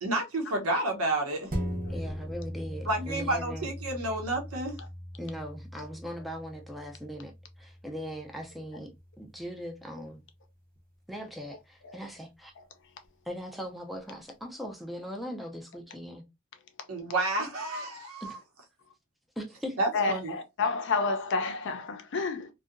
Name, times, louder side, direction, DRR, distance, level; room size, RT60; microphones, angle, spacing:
voice 1, 0.0-1.5 2.9-4.8 16.9-18.4 19.8-20.3, right 2 dB, 80° right, 0.9 m, -30 dB
sound 1, 1.5-10.3 10.8-10.9, equal, 40° right, 0.7 m, -40 dB
voice 2, 1.9-3.7 5.2-7.3 7.6-8.9 9.2-10.2 11.1-12.5 13.3-16.2 18.2-18.4 19.4-19.8, equal, ahead, 0.4 m, -39 dB
voice 3, 19.9-22.5, left 4 dB, 60° left, 0.5 m, -30 dB
2.6 x 2.3 x 2.4 m
head